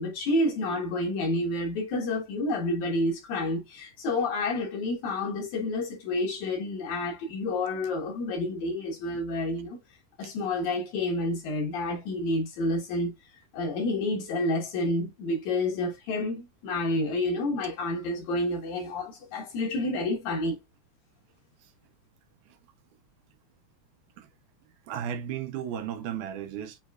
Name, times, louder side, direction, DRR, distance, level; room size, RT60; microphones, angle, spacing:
voice 1, 0.0-9.8 10.2-13.1 13.5-20.6, left 2 dB, 65° left, 2.8 m, -29 dB
voice 2, 24.9-26.8, right 9 dB, 80° right, 2.0 m, -35 dB
6.2 x 3.1 x 2.3 m
omnidirectional pair, 3.7 m